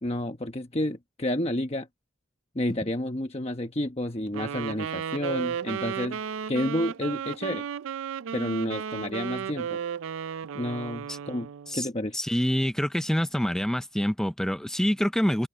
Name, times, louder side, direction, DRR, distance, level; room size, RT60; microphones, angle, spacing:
voice 1, 0.0-1.9 2.5-6.2 6.5-7.6 8.3-9.8 10.5-11.5 11.7-12.2, left 1 dB, 30° left, 1.0 m, -30 dB
Wind instrument woodwind instrument, 4.3-11.8, right 7 dB, 70° right, 0.4 m, -34 dB
voice 2, 12.1-15.5, equal, ahead, 0.4 m, -26 dB
open air
head